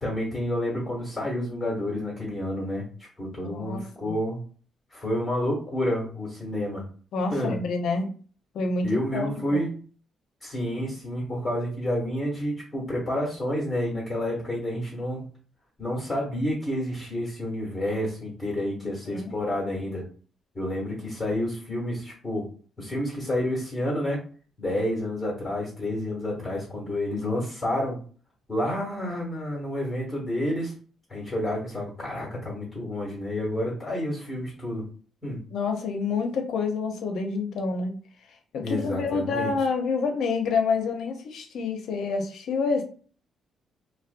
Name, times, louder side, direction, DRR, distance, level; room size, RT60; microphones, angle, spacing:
voice 1, 0.0-4.4 4.9-6.8 7.3-7.5 8.8-9.7 10.4-15.3 15.8-20.0 20.5-22.5 22.8-24.2 24.6-28.0 28.5-30.7 31.1-34.8 35.2-35.4 38.6-39.5, left 1 dB, 15° left, -3 dB, 1.0 m, -29 dB
voice 2, 3.4-4.1 7.1-8.1 8.5-8.9 9.1-9.6 18.8-19.3 35.5-37.9 38.5-42.8, left 4 dB, 70° left, 4 dB, 0.5 m, -28 dB
2.4 x 2.1 x 2.4 m, 0.43 s
cardioid pair, 90°, 0 cm